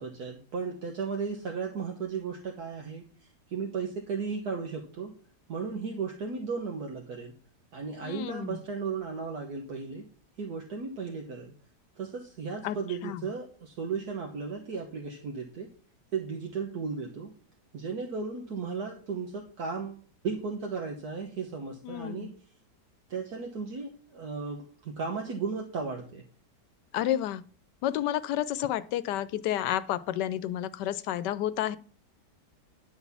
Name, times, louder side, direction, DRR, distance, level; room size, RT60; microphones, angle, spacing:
voice 1, 0.0-3.0 3.5-5.2 5.5-7.3 7.7-10.1 10.4-11.5 12.0-15.7 16.1-17.3 17.7-22.3 23.1-26.2, right 5 dB, 65° right, 1 dB, 1.7 m, -35 dB
voice 2, 8.0-8.6 12.6-12.8 13.0-13.3 21.8-22.3 26.9-27.4 27.8-31.8, left 12 dB, 85° left, 16 dB, 1.2 m, -30 dB
11.0 x 4.0 x 7.1 m, 0.41 s
omnidirectional pair, 1.8 m